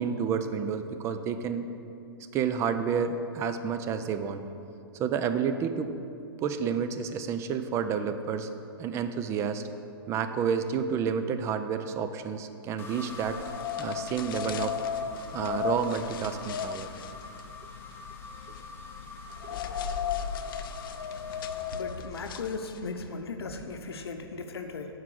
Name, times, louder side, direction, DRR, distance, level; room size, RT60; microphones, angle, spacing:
voice 1, 0.0-1.7 2.3-4.4 5.0-5.9 6.4-8.5 8.8-9.6 10.1-13.4 13.8-14.8 15.3-16.9 19.4-19.6, right 7 dB, 20° right, 9 dB, 0.4 m, -30 dB
sound 1, 12.8-22.8, left 3 dB, 15° left, 0.8 m, -46 dB
sound 2, 13.1-23.1, left 8 dB, 60° left, 0.4 m, -36 dB
voice 2, 21.7-24.9, left 4 dB, 85° left, 6 dB, 0.7 m, -37 dB
5.9 x 4.7 x 6.5 m, 2.6 s
hypercardioid pair, 130°, 13 cm